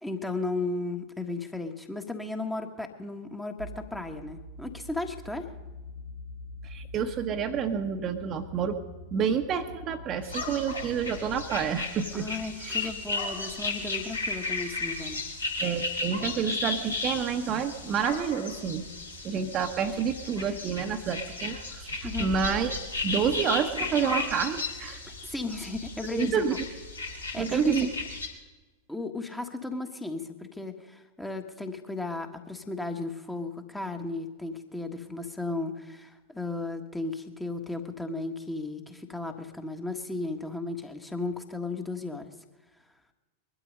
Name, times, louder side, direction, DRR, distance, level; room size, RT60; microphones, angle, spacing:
voice 1, 0.0-5.5 12.1-15.2 22.0-22.3 25.2-26.4 27.3-27.9 28.9-42.3, left 3 dB, 5° left, 5 dB, 1.5 m, -35 dB
sound 1, 3.6-11.5, left 2 dB, 80° right, 1.1 m, -44 dB
voice 2, 6.6-8.8 9.1-12.3 12.6-12.9 15.6-18.9 19.2-22.7 23.0-25.0 26.1-26.5 27.3-27.9, right 7 dB, 30° right, 6 dB, 1.2 m, -29 dB
sound 2, 10.2-28.3, left 3 dB, 80° left, 3.3 m, -35 dB
22.0 x 12.0 x 5.3 m, 1.2 s
figure-of-eight pair, 90°, 0 cm